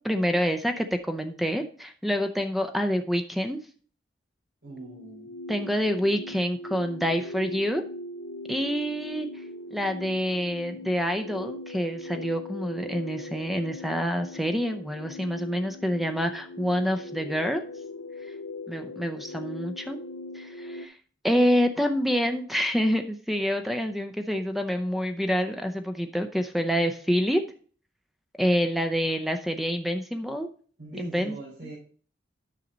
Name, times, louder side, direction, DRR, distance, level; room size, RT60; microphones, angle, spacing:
voice 1, 0.0-3.6 5.5-7.8 8.5-9.4 9.7-17.6 18.7-20.0 20.3-21.0 21.2-27.4 28.4-30.5 31.0-31.4, equal, ahead, 6 dB, 0.6 m, -27 dB
voice 2, 4.6-5.3 30.8-31.7, right 2 dB, 85° right, -6 dB, 4.9 m, -41 dB
sound 1, 4.7-20.9, left 1 dB, 75° left, 0.5 m, -40 dB
9.9 x 6.4 x 3.9 m, 0.44 s
head